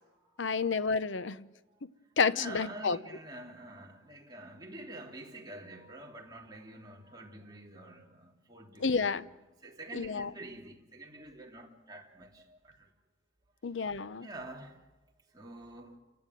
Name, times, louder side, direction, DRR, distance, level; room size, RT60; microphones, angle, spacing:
voice 1, 0.4-1.5 1.8-1.9 2.2-3.0 8.8-9.2 9.9-10.3 13.6-14.3, left 5 dB, 75° left, 0.8 m, -30 dB
voice 2, 2.3-9.3 9.6-12.9 14.2-14.8 15.3-16.0, right 1 dB, 20° right, 2.9 m, -47 dB
29.5 x 16.0 x 9.2 m
head